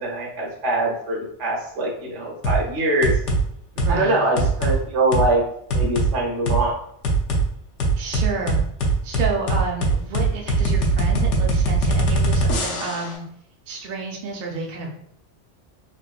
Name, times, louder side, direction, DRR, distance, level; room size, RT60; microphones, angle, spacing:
voice 1, 0.0-3.1 3.9-5.4 5.7-6.7, right 2 dB, 80° right, -2 dB, 1.2 m, -23 dB
sound 1, 2.4-2.6 3.0-3.4 3.8-4.0 4.4-4.8 5.1-5.3 5.7-6.1 6.5-6.6 7.0-7.4 7.8-13.1, right 2 dB, 80° left, 1.0 m, -20 dB
voice 2, 3.8-4.2 8.0-8.6 9.0-13.2 13.7-14.9, right 4 dB, 55° right, 0 dB, 0.6 m, -30 dB
3.5 x 2.7 x 2.3 m, 0.71 s
omnidirectional pair, 1.2 m